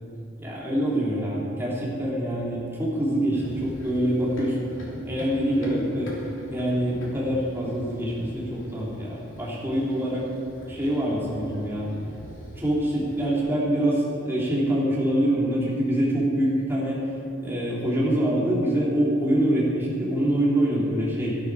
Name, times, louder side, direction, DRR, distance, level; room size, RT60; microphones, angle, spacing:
voice 1, 0.4-4.7 5.0-6.2 6.5-10.3 10.7-11.9 12.6-17.0 17.4-21.4, right 1 dB, 10° right, -7 dB, 3.0 m, -25 dB
Run, 3.3-13.4, equal, 80° left, 3.0 m, -42 dB
13.5 x 12.0 x 4.8 m, 2.6 s
head